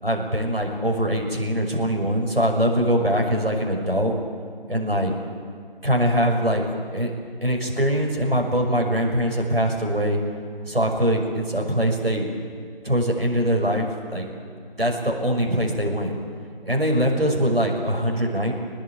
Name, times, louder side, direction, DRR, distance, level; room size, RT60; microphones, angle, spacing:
voice 1, 0.0-4.1 4.7-5.1 5.8-6.6 6.9-7.1 7.4-10.2 10.7-12.3 12.8-14.3 14.8-16.1 16.6-18.5, equal, 75° right, 1 dB, 5.9 m, -22 dB
23.5 x 19.5 x 8.9 m, 2.1 s
figure-of-eight pair, 170°, 29 cm